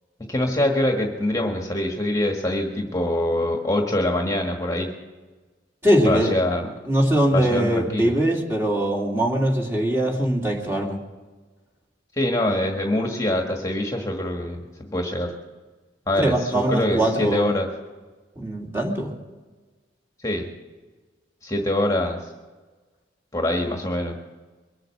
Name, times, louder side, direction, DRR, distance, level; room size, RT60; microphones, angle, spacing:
voice 1, 0.3-4.9 6.0-6.7 7.3-8.1 12.2-14.6 14.9-15.3 16.1-17.7 20.2-20.5 21.4-22.3 23.3-24.1, left 1 dB, 20° left, 2 dB, 1.5 m, -24 dB
voice 2, 5.8-6.3 6.9-11.0 16.2-17.5 18.4-19.1, right 1 dB, 15° right, 0 dB, 2.5 m, -22 dB
23.0 x 7.8 x 7.7 m, 1.3 s
head